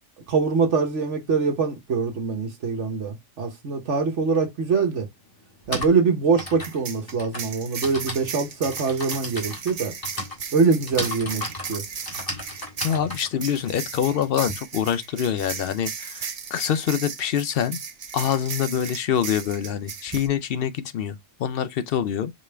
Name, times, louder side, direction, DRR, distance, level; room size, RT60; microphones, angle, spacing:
voice 1, 0.3-5.1 5.7-9.9 10.5-11.8, right 4 dB, 65° right, 1.3 m, -23 dB
Typing, 4.3-4.4 5.4-14.5, left 1 dB, 15° left, 1.7 m, -35 dB
sound 1, 5.6-5.9 6.6-20.3, right 6 dB, 45° right, 0.5 m, -36 dB
voice 2, 12.8-17.8 18.1-22.3, left 9 dB, 60° left, 0.6 m, -25 dB
5.2 x 3.1 x 3.3 m
omnidirectional pair, 1.3 m